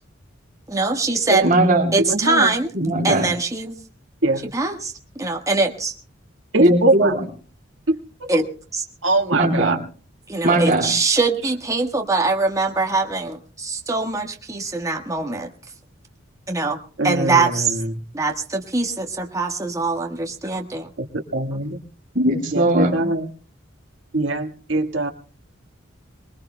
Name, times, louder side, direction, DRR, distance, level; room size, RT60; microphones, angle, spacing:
voice 1, 0.7-1.4 1.9-2.7 3.0-3.7 4.5-5.9 8.3-8.4 8.7-8.8 10.3-15.5 16.5-16.8 17.0-17.8 18.1-20.9 21.5-21.6 23.0-23.1, right 3 dB, 15° right, 2 dB, 1.4 m, -22 dB
voice 2, 1.4-1.9 2.7-3.3 6.6-7.2 9.3-9.8 10.4-10.9 22.1-22.9, right 1 dB, 45° right, 0 dB, 3.0 m, -19 dB
voice 3, 2.0-2.5 4.2-4.5 6.5-7.2 7.9-8.3 9.0-9.8 17.0-17.8 21.0-21.1 21.3-21.8 22.5-23.3 24.1-25.1, right 2 dB, 70° right, 4 dB, 1.6 m, -21 dB
24.5 x 20.5 x 2.2 m, 0.42 s
head